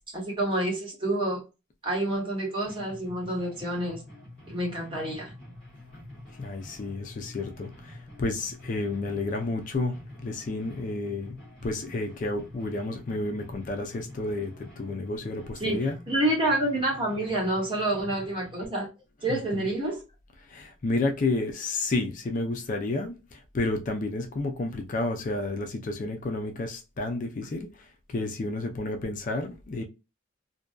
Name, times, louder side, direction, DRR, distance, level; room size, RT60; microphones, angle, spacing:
voice 1, 0.1-1.4 1.8-4.0 4.5-5.3 15.6-15.8 16.1-18.9 19.2-20.0, right 1 dB, 25° right, 1.1 m, -28 dB
sound 1, 2.6-18.7, left 1 dB, 5° left, 1.3 m, -47 dB
voice 2, 6.4-16.0 19.3-19.7 20.5-29.8, left 2 dB, 40° left, 0.4 m, -31 dB
2.6 x 2.2 x 2.2 m
head